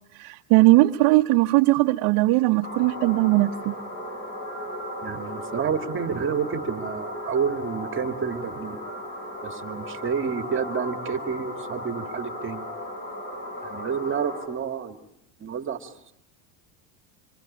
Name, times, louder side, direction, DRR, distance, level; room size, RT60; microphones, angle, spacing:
voice 1, 0.1-3.7, right 20 dB, 65° right, 1 dB, 1.2 m, -19 dB
sound 1, 2.6-14.5, left 1 dB, 30° left, 7.9 m, -36 dB
voice 2, 5.0-8.8 9.4-12.7 13.6-15.0 15.4-16.1, right 6 dB, 30° right, 6 dB, 2.1 m, -29 dB
26.5 x 23.5 x 8.6 m, 0.81 s
supercardioid pair, 135°, 42 cm